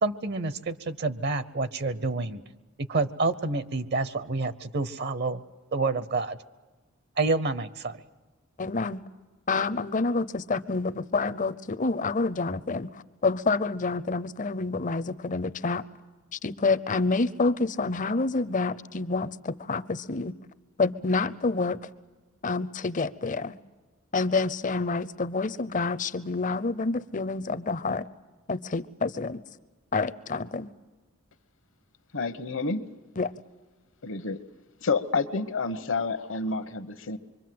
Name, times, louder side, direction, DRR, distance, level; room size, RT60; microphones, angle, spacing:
voice 1, 0.0-2.4 2.8-5.4 5.7-6.4 7.2-8.0, right 3 dB, 50° right, 15 dB, 0.8 m, -28 dB
voice 2, 8.6-9.0 9.5-15.8 16.3-20.3 20.8-21.9 22.4-23.6 24.1-28.1 28.5-29.4 29.9-30.7 33.2-33.3, left 3 dB, 40° left, 13 dB, 0.7 m, -28 dB
voice 3, 32.1-32.8 34.0-34.4 34.8-37.2, left 4 dB, 65° left, 12 dB, 1.1 m, -29 dB
25.5 x 24.0 x 7.7 m, 1.3 s
head